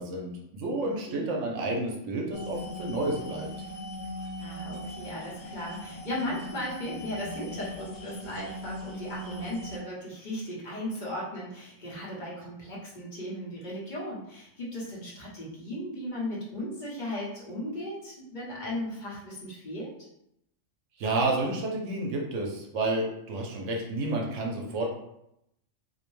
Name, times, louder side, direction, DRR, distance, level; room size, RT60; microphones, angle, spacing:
voice 1, 0.0-3.5 21.0-24.9, right 2 dB, 75° right, 0 dB, 0.9 m, -30 dB
voice 2, 0.8-1.2 4.4-19.9, left 1 dB, 40° left, -6 dB, 0.9 m, -36 dB
sound 1, 2.3-9.8, left 1 dB, 85° left, 1.1 m, -40 dB
2.6 x 2.1 x 3.0 m, 0.80 s
omnidirectional pair, 1.3 m